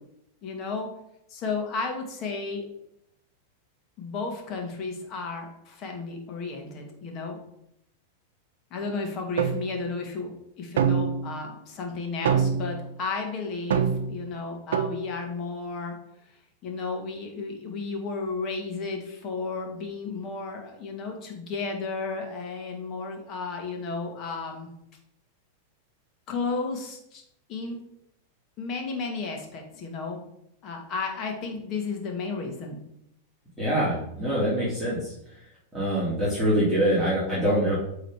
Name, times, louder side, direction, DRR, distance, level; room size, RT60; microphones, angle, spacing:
voice 1, 0.4-0.9 1.3-2.7 4.0-7.4 8.7-16.0 16.6-24.7 26.3-27.2 27.5-27.8 28.6-30.2 30.6-32.8, left 4 dB, 40° left, 2 dB, 2.1 m, -33 dB
sound 1, 9.4-9.7 10.8-11.4 12.3-12.8 13.7-14.2 14.7-15.0, right 7 dB, 80° right, 0.7 m, -24 dB
voice 2, 33.6-35.1 35.7-37.7, equal, 5° right, -10 dB, 2.7 m, -24 dB
8.2 x 3.9 x 4.8 m, 0.78 s
hypercardioid pair, 125°, 0 cm